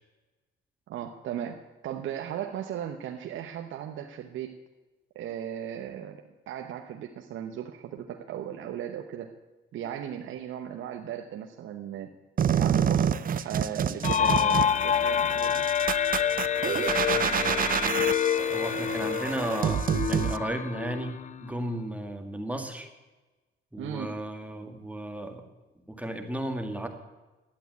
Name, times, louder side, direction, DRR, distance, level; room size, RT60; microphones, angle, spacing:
voice 1, 0.9-4.5 5.1-9.3 9.7-12.1 12.5-15.7 23.8-24.1, right 9 dB, 75° right, 3 dB, 1.0 m, -37 dB
sound 1, 12.4-20.4, right 8 dB, 45° right, 0.7 m, -28 dB
sound 2, 14.0-21.7, left 9 dB, 35° left, 0.4 m, -27 dB
voice 2, 16.6-17.9 18.5-22.9 23.7-25.4 25.9-26.9, right 1 dB, 5° right, 5 dB, 2.0 m, -35 dB
12.0 x 8.4 x 9.3 m, 1.2 s
cardioid pair, 90°, 20 cm